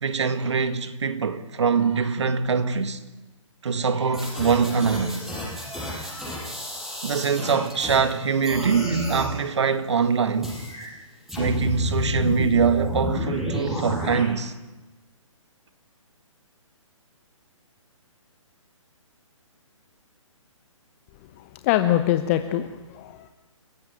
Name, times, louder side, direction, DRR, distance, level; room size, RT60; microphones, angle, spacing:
voice 1, 0.0-3.0 3.6-5.3 7.0-10.7 11.4-14.5, right 5 dB, 55° right, 1.8 m, -23 dB
sound 1, 4.1-8.1 8.4-9.3 10.4-10.9 11.3-14.2, left 1 dB, ahead, 6.2 m, -31 dB
voice 2, 5.7-6.5 21.4-23.3, left 12 dB, 25° left, 0.9 m, -25 dB
28.5 x 16.0 x 9.6 m
figure-of-eight pair, 135°, 17 cm